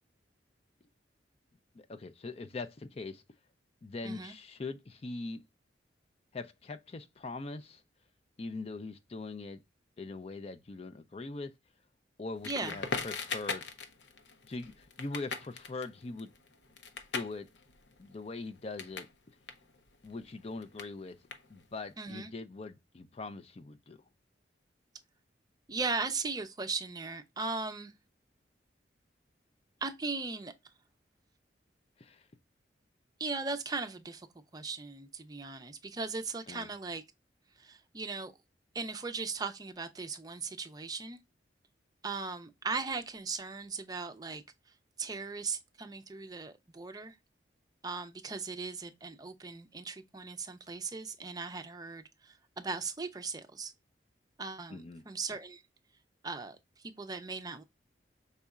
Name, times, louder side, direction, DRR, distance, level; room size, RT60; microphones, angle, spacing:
voice 1, 1.7-3.2 3.8-5.4 6.3-7.8 8.4-9.6 10.0-11.5 12.2-13.7 14.5-16.3 17.1-17.5 18.0-19.1 20.0-21.2 21.5-24.0 32.0-32.3 36.5-36.7 54.7-55.0, left 3 dB, 35° left, 0.4 m, -42 dB
voice 2, 4.0-4.3 12.4-12.8 22.0-22.3 25.7-27.9 29.8-30.5 33.2-34.3 34.5-37.0 37.6-38.3 38.7-41.2 42.0-44.4 45.0-47.2 47.8-53.7 54.4-55.6 56.2-57.6, right 4 dB, 20° right, 0.5 m, -38 dB
Crackle, 12.4-19.1 19.4-21.9, left 4 dB, 80° left, 0.7 m, -40 dB
5.4 x 4.0 x 2.3 m
head